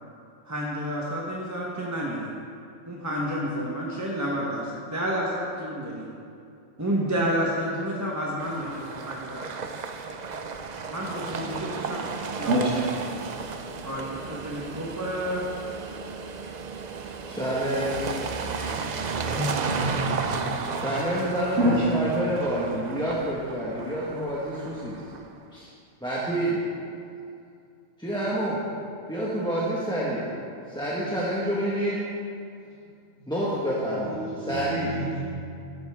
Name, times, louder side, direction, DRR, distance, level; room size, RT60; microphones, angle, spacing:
voice 1, 0.4-2.3 2.9-6.1 6.8-9.4 10.9-12.0 12.4-12.8 13.8-15.5, equal, 15° right, -4 dB, 1.1 m, -30 dB
sound 1, 8.4-25.4, right 5 dB, 50° right, 0.5 m, -34 dB
voice 2, 17.4-18.2 20.7-25.0 25.5-25.7 26.0-26.6 28.0-28.6 29.1-30.3 30.7-32.0 33.3-35.0, right 1 dB, 5° left, -8 dB, 1.4 m, -28 dB
voice 3, 19.3-20.2 21.6-21.7 34.6-34.7 35.0-35.2, right 1 dB, 80° right, -5 dB, 1.9 m, -25 dB
14.0 x 10.5 x 3.6 m, 2.5 s
omnidirectional pair, 1.3 m